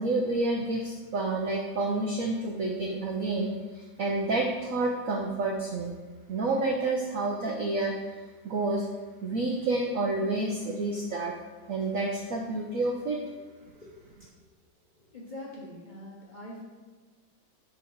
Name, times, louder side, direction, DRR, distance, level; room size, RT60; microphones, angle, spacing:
voice 1, 0.0-5.9 6.3-8.1 8.4-8.9 9.2-11.3 11.7-13.2, right 2 dB, 70° right, 1 dB, 0.7 m, -29 dB
voice 2, 15.0-16.6, left 1 dB, 40° left, -4 dB, 0.7 m, -44 dB
7.7 x 3.8 x 4.6 m, 1.3 s
omnidirectional pair, 2.2 m